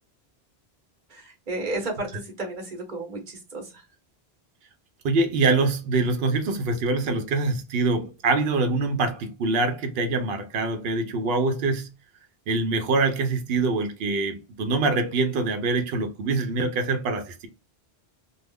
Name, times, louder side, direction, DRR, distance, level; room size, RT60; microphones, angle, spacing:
voice 1, 1.1-3.7, right 2 dB, 50° right, 1.0 m, -33 dB
voice 2, 5.0-11.9 12.5-17.5, right 3 dB, 75° right, 0.8 m, -24 dB
2.4 x 2.0 x 3.4 m
omnidirectional pair, 1.0 m